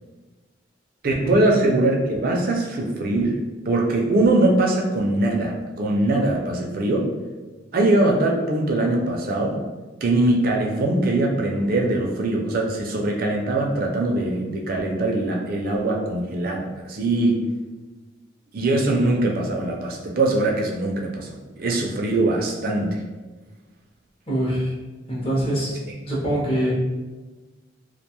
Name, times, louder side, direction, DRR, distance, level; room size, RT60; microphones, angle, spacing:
voice 1, 1.0-3.4 3.7-7.1 7.7-9.6 10.0-17.4 18.5-23.0, right 2 dB, 50° right, 0 dB, 0.4 m, -22 dB
voice 2, 24.3-24.8 25.1-25.8 26.1-26.7, right 1 dB, 30° left, -5 dB, 0.6 m, -24 dB
2.4 x 2.2 x 2.8 m, 1.2 s
head